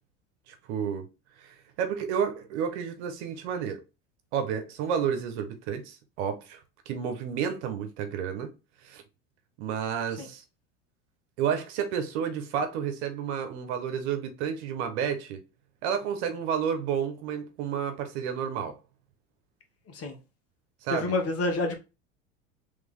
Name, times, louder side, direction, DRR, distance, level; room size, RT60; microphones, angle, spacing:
voice 1, 0.5-1.1 1.4-3.8 4.3-6.6 6.9-8.5 8.8-9.0 9.6-10.4 11.4-15.4 15.8-18.8 20.8-21.1, right 7 dB, 65° right, 1.2 m, -31 dB
voice 2, 19.9-20.2 20.9-21.8, left 2 dB, 40° left, 1.6 m, -28 dB
3.6 x 3.5 x 3.6 m
hypercardioid pair, 90°, 35 cm